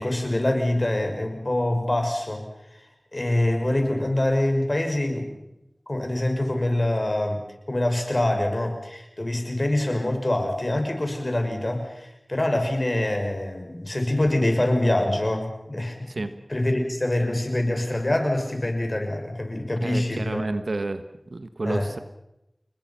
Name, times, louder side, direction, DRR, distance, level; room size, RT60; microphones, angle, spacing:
voice 1, 0.0-2.8 3.1-5.4 5.9-7.4 7.7-20.4 21.6-21.9, left 1 dB, 45° left, 4 dB, 6.2 m, -25 dB
voice 2, 19.8-21.0 21.3-22.0, right 2 dB, 85° right, 10 dB, 1.3 m, -30 dB
29.5 x 20.5 x 5.9 m, 0.86 s
wide cardioid pair, 40°, 0 cm